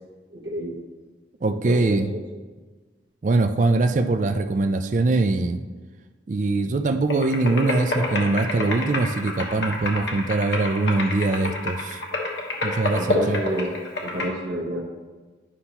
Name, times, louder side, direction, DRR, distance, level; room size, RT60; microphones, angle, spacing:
voice 1, 0.3-0.8 1.4-2.2 12.9-14.8, right 1 dB, 70° right, -3 dB, 1.1 m, -30 dB
voice 2, 1.4-2.1 3.2-5.6 6.3-12.0 12.6-13.4, right 3 dB, 40° right, 8 dB, 0.3 m, -22 dB
sound 1, 7.1-14.3, left 2 dB, 70° left, 1.2 m, -28 dB
9.9 x 5.5 x 2.9 m, 1.3 s
head